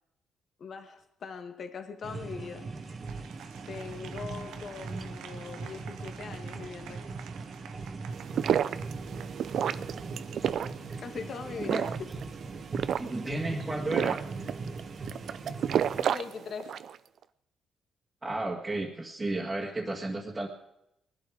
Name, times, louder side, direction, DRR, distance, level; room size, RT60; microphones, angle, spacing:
voice 1, 0.6-2.7 3.7-7.2 11.0-12.1 16.1-16.8, left 5 dB, 55° left, 7 dB, 1.8 m, -41 dB
sound 1, 2.0-16.0, right 4 dB, 40° right, 1.5 m, -40 dB
Applause, 2.4-10.0, right 9 dB, 90° right, 1.0 m, -50 dB
sound 2, 8.1-17.0, right 9 dB, 65° right, 0.6 m, -31 dB
voice 2, 13.0-14.2 18.2-20.5, right 2 dB, 20° right, -3 dB, 2.0 m, -33 dB
20.0 x 11.5 x 5.0 m, 0.82 s
cardioid pair, 90°, 0 cm